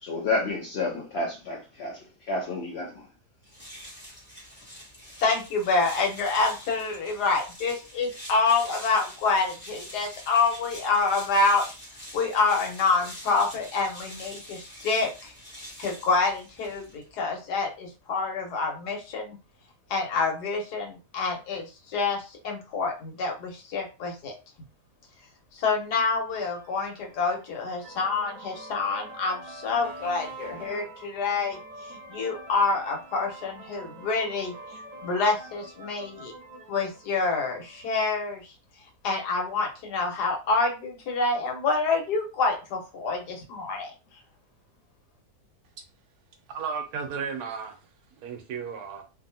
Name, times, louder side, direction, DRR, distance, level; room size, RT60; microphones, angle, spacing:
voice 1, 0.0-3.1, left 3 dB, 55° left, 0.8 m, -30 dB
sound 1, 3.4-17.1, equal, 10° left, 0.9 m, -45 dB
voice 2, 5.2-11.6 12.1-15.3 15.8-19.4 19.9-24.3 25.5-36.3 36.7-38.5 39.0-43.9, left 4 dB, 80° left, 1.5 m, -27 dB
sound 2, 26.3-38.0, right 2 dB, 30° right, 0.8 m, -45 dB
voice 3, 46.5-47.8 48.2-49.0, right 6 dB, 75° right, 1.0 m, -34 dB
2.8 x 2.6 x 2.7 m
omnidirectional pair, 1.7 m